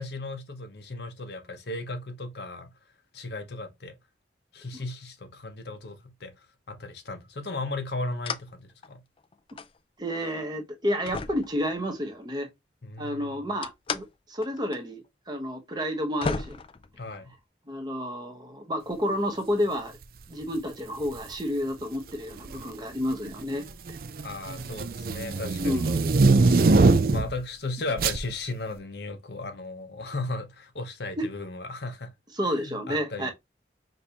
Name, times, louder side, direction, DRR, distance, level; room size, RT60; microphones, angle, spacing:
voice 1, 0.0-2.7 3.1-4.0 4.5-6.3 6.7-9.0 12.8-13.4 17.0-17.3 24.2-25.9 26.4-26.8 27.1-32.1 32.5-33.3, left 2 dB, 65° left, 0.8 m, -36 dB
sound 1, 8.2-8.5 8.8-9.8 10.3-10.4 11.1-12.1 13.6-14.1 14.4-14.8 15.0-15.1 15.8-15.9 16.2-17.4, left 4 dB, 30° left, 0.3 m, -34 dB
voice 2, 10.0-12.5 13.0-16.6 17.7-20.0 20.3-24.0 25.6-26.1 31.2-31.3 32.3-33.3, equal, 25° right, 0.8 m, -30 dB
sound 2, 21.1-21.3 22.3-22.8 23.1-27.4 28.0-28.2, right 3 dB, 50° right, 0.4 m, -22 dB
5.2 x 2.7 x 2.8 m
head